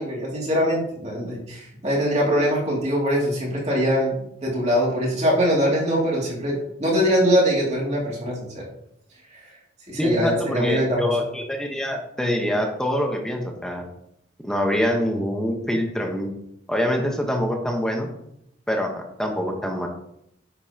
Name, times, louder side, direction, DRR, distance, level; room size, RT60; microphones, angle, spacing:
voice 1, 0.0-8.6 9.9-11.1, equal, 35° right, -3 dB, 2.6 m, -22 dB
voice 2, 10.0-13.9 14.4-16.3 16.7-18.1 18.7-19.9, equal, 5° left, 2 dB, 1.1 m, -25 dB
9.7 x 7.1 x 2.9 m, 0.77 s
head